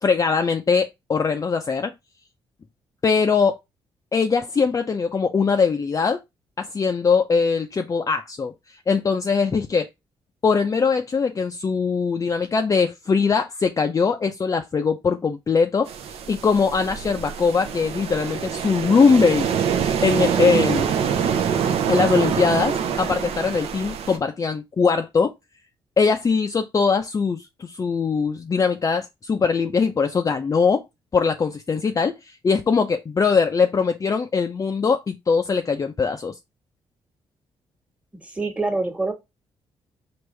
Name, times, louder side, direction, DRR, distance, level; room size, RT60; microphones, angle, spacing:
voice 1, 0.0-1.9 3.0-3.6 4.1-6.2 6.6-8.5 8.9-9.9 10.4-15.9 16.3-19.5 20.0-20.9 21.9-25.3 26.0-30.8 31.1-36.4, left 5 dB, 30° left, 0.4 m, -21 dB
sound 1, 15.9-24.2, right 7 dB, 75° right, 0.6 m, -25 dB
voice 2, 38.2-39.1, right 3 dB, 10° right, 1.3 m, -25 dB
4.6 x 2.6 x 3.2 m
cardioid pair, 80°, 10 cm